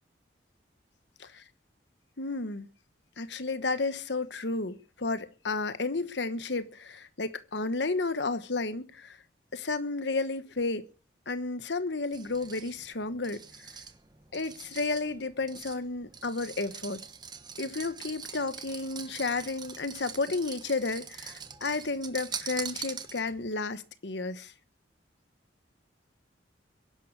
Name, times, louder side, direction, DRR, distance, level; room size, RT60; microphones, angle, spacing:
voice 1, 2.2-2.7 3.2-9.2 9.5-10.9 11.3-13.4 14.3-17.0 17.6-24.5, left 3 dB, 70° left, 1.2 m, -32 dB
sound 1, 12.1-23.5, right 6 dB, 25° right, 1.2 m, -43 dB
22.5 x 11.5 x 4.7 m
head